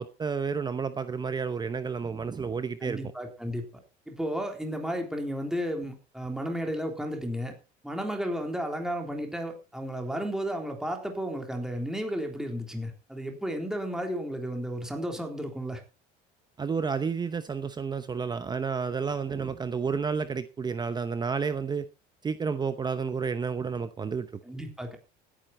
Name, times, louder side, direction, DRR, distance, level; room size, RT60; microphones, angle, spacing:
voice 1, 0.0-3.0 16.6-21.9 22.2-24.3, right 5 dB, 20° right, 0.8 m, -31 dB
voice 2, 2.8-3.6 4.1-7.5 7.8-15.8 24.4-25.0, equal, 5° right, 3.6 m, -33 dB
16.0 x 10.0 x 4.2 m
cardioid pair, 120°, 19 cm